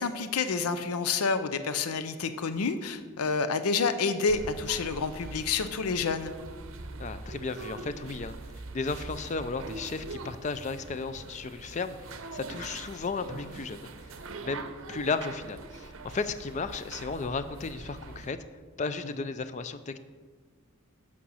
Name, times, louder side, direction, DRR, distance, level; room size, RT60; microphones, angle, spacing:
voice 1, 0.0-6.3, left 4 dB, 90° left, 10 dB, 0.6 m, -29 dB
sound 1, 4.3-18.3, right 3 dB, 65° right, 0.7 m, -43 dB
voice 2, 7.0-8.3 8.7-18.4 18.8-19.9, left 4 dB, 30° left, 12 dB, 0.4 m, -34 dB
8.6 x 6.2 x 5.6 m, 1.5 s
head